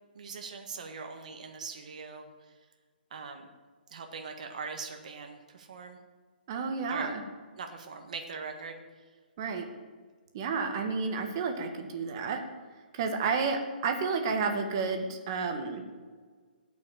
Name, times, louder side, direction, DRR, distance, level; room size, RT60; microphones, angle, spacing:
voice 1, 0.1-2.3 3.1-3.5 3.9-6.0 6.9-7.1 7.6-8.8, right 5 dB, 45° right, 4 dB, 1.6 m, -41 dB
voice 2, 6.5-7.2 9.4-9.6 10.3-12.4 12.9-15.8, right 4 dB, 25° right, 5 dB, 1.5 m, -31 dB
17.5 x 6.3 x 8.9 m, 1.5 s
hypercardioid pair, 175°, 6 cm